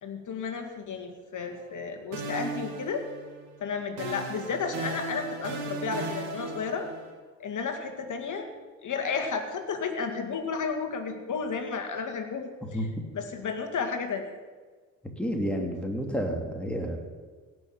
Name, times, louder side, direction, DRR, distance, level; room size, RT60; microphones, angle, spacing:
voice 1, 0.0-3.1 3.6-6.9 7.4-8.5 8.8-12.9 13.1-14.3, left 5 dB, 50° left, 5 dB, 2.1 m, -32 dB
sound 1, 1.5-1.8 2.1-3.5 4.0-7.1, right 4 dB, 75° right, 2.5 m, -37 dB
voice 2, 15.2-17.0, equal, 5° left, 2 dB, 2.9 m, -30 dB
17.0 x 6.2 x 7.5 m, 1.4 s
hypercardioid pair, 55°, 40 cm